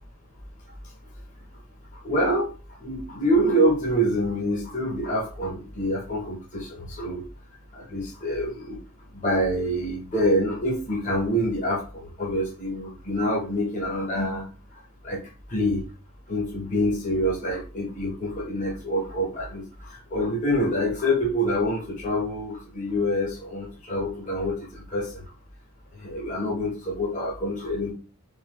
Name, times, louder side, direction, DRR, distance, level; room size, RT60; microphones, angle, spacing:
voice 1, 2.0-2.5 2.8-7.2 7.7-8.8 9.2-14.4 15.0-15.2 15.5-15.8 16.3-19.6 20.1-25.2 26.0-27.9, equal, 35° left, -3 dB, 0.9 m, -26 dB
3.7 x 2.7 x 3.0 m, 0.35 s
head